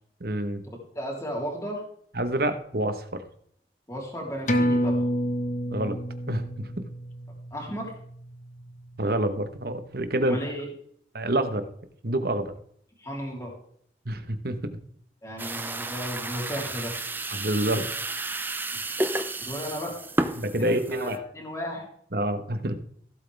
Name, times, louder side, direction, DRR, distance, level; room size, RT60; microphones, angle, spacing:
voice 1, 0.2-0.6 2.1-3.0 5.7-6.0 6.3-6.8 9.0-10.4 11.1-11.7 12.0-12.5 14.0-14.7 17.3-17.9 20.4-21.2 22.1-22.7, right 1 dB, 55° right, 9 dB, 1.2 m, -27 dB
voice 2, 1.0-1.8 3.9-5.0 7.5-8.0 10.2-10.7 13.0-13.5 15.2-17.0 19.4-20.0 20.6-21.9, equal, 15° left, -2 dB, 3.5 m, -34 dB
sound 1, 4.5-9.4 9.8-9.9, equal, 45° left, 1.2 m, -29 dB
sound 2, 15.4-21.2, right 2 dB, 10° right, 0.6 m, -32 dB
16.0 x 8.1 x 3.5 m, 0.65 s
head